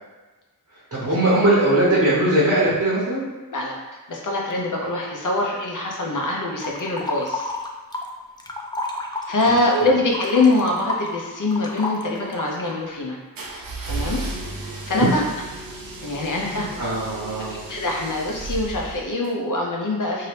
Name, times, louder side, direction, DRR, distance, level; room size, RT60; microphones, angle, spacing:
voice 1, 0.9-3.2 4.8-4.9 14.0-14.2 15.0-15.1 16.4-17.6, right 1 dB, 55° right, -8 dB, 0.9 m, -20 dB
voice 2, 4.1-7.5 9.3-13.2 13.8-14.2 14.9-15.2 16.0-16.8 17.5-20.3, left 2 dB, 60° left, -1 dB, 0.7 m, -23 dB
sound 1, 6.6-8.1 8.4-12.8, left 2 dB, 15° left, 0.3 m, -31 dB
sound 2, 13.4-19.3, right 2 dB, 75° right, 0.6 m, -34 dB
2.8 x 2.8 x 3.3 m, 1.2 s
wide cardioid pair, 90°, 35 cm